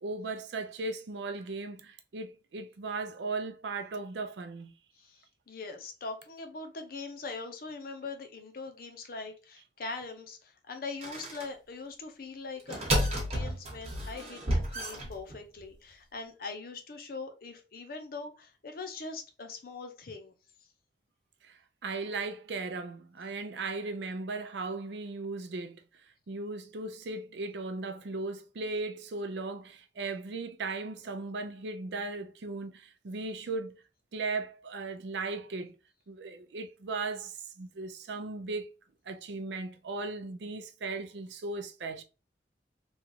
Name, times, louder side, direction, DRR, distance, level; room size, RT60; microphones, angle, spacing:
voice 1, 0.0-4.7 21.4-25.8 26.3-33.8 34.1-35.7 36.1-38.7 39.1-42.0, right 3 dB, 75° right, 0.5 m, -37 dB
voice 2, 5.0-20.3, left 4 dB, 55° left, 0.6 m, -42 dB
sound 1, 11.0-11.4 12.6-15.6, equal, 35° right, 1.0 m, -31 dB
3.0 x 2.4 x 2.8 m
head